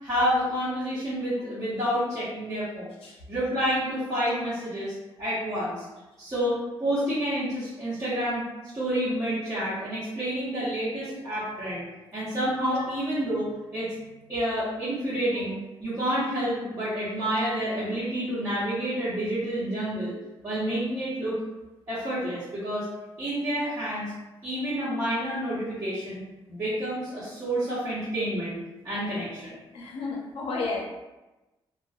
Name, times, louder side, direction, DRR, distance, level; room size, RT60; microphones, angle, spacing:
voice 1, 0.0-2.9 3.3-5.8 6.2-8.4 8.7-11.8 12.1-13.9 14.3-20.1 20.4-21.3 21.9-22.9 23.2-24.1 24.4-26.2 26.5-28.6 28.8-29.6, equal, 25° right, -13 dB, 0.9 m, -29 dB
voice 2, 29.7-30.8, left 3 dB, 80° left, -3 dB, 0.6 m, -32 dB
2.5 x 2.1 x 2.3 m, 1.1 s
wide cardioid pair, 145°, 9 cm